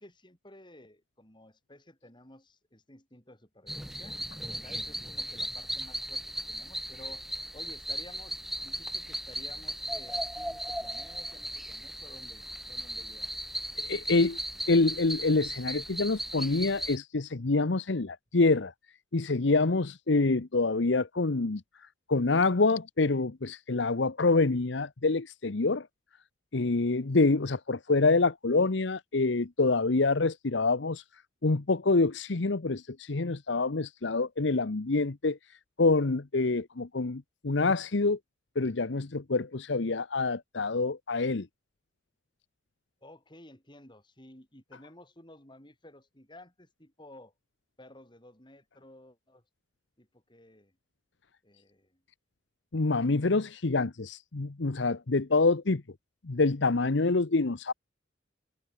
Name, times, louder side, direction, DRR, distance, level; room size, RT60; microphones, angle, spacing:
voice 1, 0.0-4.2 4.6-7.2 7.5-13.4 43.0-47.3 47.8-49.4 50.0-50.8 51.4-52.0, left 1 dB, 25° left, 6.6 m, -54 dB
sound 1, 3.7-17.0, equal, ahead, 2.3 m, -37 dB
voice 2, 13.8-14.4 14.7-18.7 19.1-25.9 26.5-31.0 31.4-35.4 35.8-38.2 38.6-41.5 52.7-55.8 56.2-57.7, left 3 dB, 65° left, 0.9 m, -26 dB
head